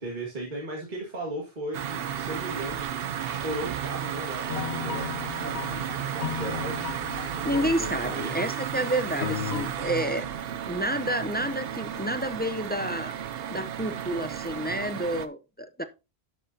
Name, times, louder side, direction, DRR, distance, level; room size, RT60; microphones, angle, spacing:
voice 1, 0.0-6.9 7.3-8.5, right 1 dB, 45° right, 1.9 m, -37 dB
sound 1, 1.7-15.3, right 9 dB, 70° right, 0.9 m, -33 dB
sound 2, 4.5-8.0 8.4-8.6 9.2-9.7, left 8 dB, 75° left, 1.0 m, -35 dB
voice 2, 7.4-10.3 10.7-13.1 13.5-15.8, equal, 15° left, 0.5 m, -29 dB
11.5 x 6.6 x 2.7 m
omnidirectional pair, 1.1 m